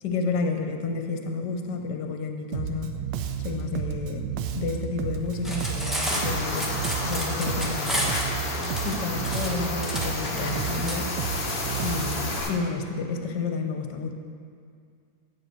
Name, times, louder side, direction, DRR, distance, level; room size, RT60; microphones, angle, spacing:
voice 1, 0.0-2.9 3.4-4.2 4.5-6.7 7.0-8.2 8.8-11.1 11.8-14.1, left 4 dB, 65° left, 4 dB, 1.3 m, -30 dB
Bass guitar, 2.5-12.4, right 8 dB, 75° right, 1.2 m, -32 dB
Cutlery silverware, 5.3-11.0, equal, ahead, 0.6 m, -31 dB
sound 1, 6.1-12.5, left 3 dB, 45° left, 0.7 m, -32 dB
9.5 x 7.8 x 4.5 m, 2.3 s
omnidirectional pair, 2.2 m